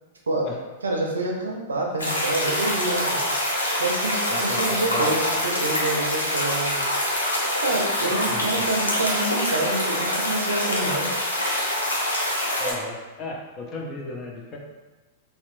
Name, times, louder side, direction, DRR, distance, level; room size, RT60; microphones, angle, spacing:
voice 1, 0.8-3.2 3.8-6.9 7.6-11.2, right 2 dB, 85° right, -1 dB, 0.5 m, -27 dB
sound 1, 2.0-12.7, left 1 dB, 90° left, 0.5 m, -25 dB
voice 2, 4.3-5.2 8.3-8.7 12.6-14.6, left 2 dB, 35° left, -1 dB, 0.5 m, -34 dB
2.8 x 2.1 x 2.5 m, 1.2 s
hypercardioid pair, 105°, 0 cm